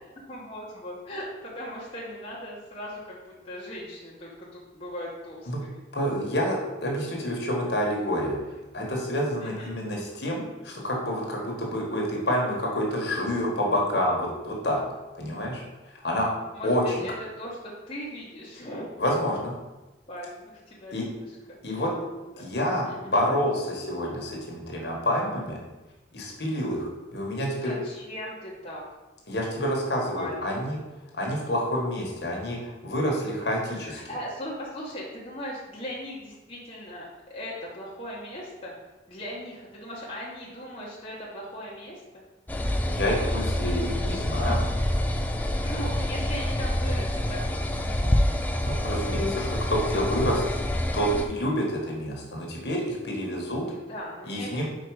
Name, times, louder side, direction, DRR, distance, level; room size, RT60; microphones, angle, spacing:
voice 1, 0.0-5.8 9.4-9.7 16.5-18.9 19.3-19.4 20.1-21.6 22.3-22.5 22.8-23.1 27.4-28.8 30.1-30.6 33.8-38.8 39.1-42.2 45.6-47.9 53.7-54.7, equal, 30° left, -6 dB, 1.1 m, -39 dB
voice 2, 5.9-8.4 8.7-14.8 15.2-15.6 16.0-16.3 16.6-16.8 19.0-19.5 20.9-21.0 21.6-21.9 22.4-25.6 26.1-27.7 29.3-30.8 31.1-34.0 42.9-44.7 48.6-50.4 50.9-53.6 54.3-54.7, equal, 60° left, -2 dB, 1.4 m, -28 dB
sound 1, 42.5-51.3, left 1 dB, 10° left, 0.3 m, -27 dB
4.8 x 4.8 x 4.8 m, 1.1 s
head